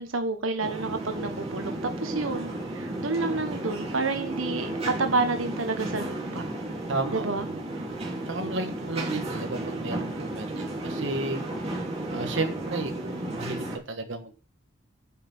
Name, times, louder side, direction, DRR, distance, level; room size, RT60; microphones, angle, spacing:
voice 1, 0.0-6.4 7.1-7.5 8.4-8.6, right 3 dB, 90° right, 1.5 m, -29 dB
sound 1, 0.6-13.8, right 1 dB, 30° right, 3.3 m, -33 dB
voice 2, 6.9-7.6 8.3-11.4 12.1-14.4, right 2 dB, 65° right, 1.5 m, -33 dB
9.9 x 6.0 x 6.1 m
head